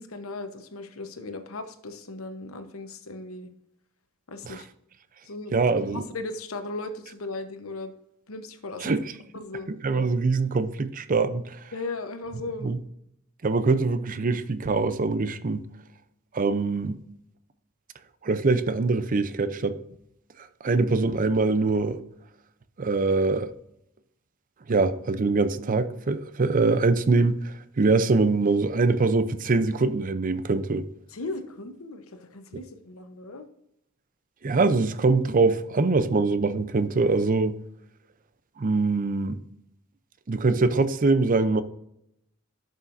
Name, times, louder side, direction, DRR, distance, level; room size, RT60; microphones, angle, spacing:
voice 1, 0.0-3.5 4.3-4.7 5.2-5.5 5.8-7.9 8.3-8.9 9.3-9.7 11.7-12.7 31.1-33.5, left 2 dB, 85° left, 1.0 m, -37 dB
voice 2, 5.5-6.0 8.8-11.6 12.6-12.8 13.4-15.7 16.3-17.0 18.2-19.8 20.6-22.0 22.8-23.5 24.7-30.9 34.4-37.6 38.6-39.4 40.3-41.6, right 3 dB, 40° right, 0.5 m, -23 dB
11.0 x 6.5 x 2.6 m
head